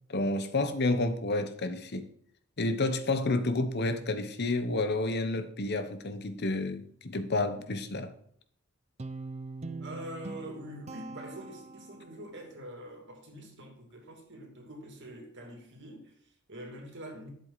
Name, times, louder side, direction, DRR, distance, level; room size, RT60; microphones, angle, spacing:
voice 1, 0.1-2.1 2.6-8.1, left 2 dB, 50° left, 1.0 m, -30 dB
Guitar, 9.0-12.3, right 3 dB, 30° right, 0.6 m, -42 dB
voice 2, 9.8-17.3, right 1 dB, 55° right, 2.7 m, -45 dB
11.5 x 7.7 x 4.1 m
head